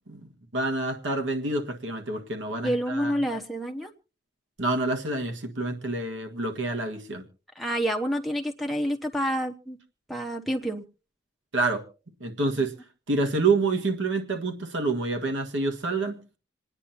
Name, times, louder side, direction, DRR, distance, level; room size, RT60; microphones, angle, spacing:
voice 1, 0.5-3.1 4.6-7.2 11.5-11.8 12.2-12.7 13.1-16.2, right 3 dB, 90° right, 1.7 m, -27 dB
voice 2, 2.6-3.9 7.6-9.8 10.1-10.8, equal, ahead, 1.0 m, -28 dB
27.5 x 9.7 x 2.8 m
head